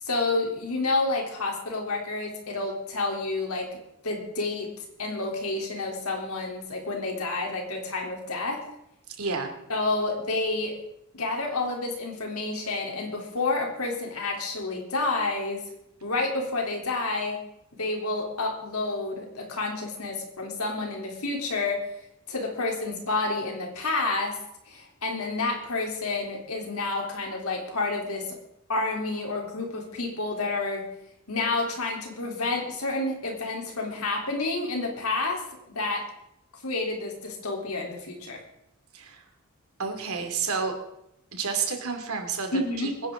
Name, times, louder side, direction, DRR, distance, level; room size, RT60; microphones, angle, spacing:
voice 1, 0.0-3.7 4.0-8.6 9.7-10.8 11.1-15.6 16.0-17.4 17.7-21.9 22.3-24.4 24.7-28.4 28.7-30.9 31.3-35.4 35.8-36.1 36.6-38.4 42.5-43.0, left 3 dB, 85° left, 1 dB, 3.5 m, -29 dB
voice 2, 9.1-9.5 38.9-39.2 39.8-40.7 41.3-43.1, right 5 dB, 80° right, 5 dB, 2.6 m, -30 dB
24.0 x 10.5 x 3.8 m, 0.81 s
head